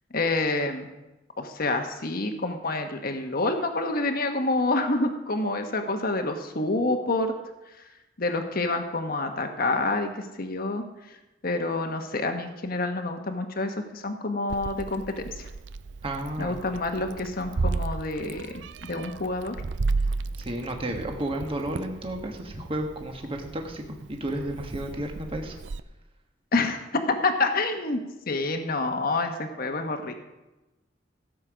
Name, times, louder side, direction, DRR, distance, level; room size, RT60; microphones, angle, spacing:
voice 1, 0.1-0.9 1.4-7.3 8.2-10.8 11.4-15.4 16.4-19.6 26.5-28.0 28.3-30.1, left 2 dB, 55° left, 5 dB, 1.2 m, -28 dB
Meow, 14.5-25.8, right 3 dB, 70° right, 0.5 m, -34 dB
voice 2, 16.0-16.5 20.4-23.8 24.1-25.6, right 1 dB, 30° right, 3 dB, 1.5 m, -32 dB
16.5 x 7.8 x 5.1 m, 1.0 s
head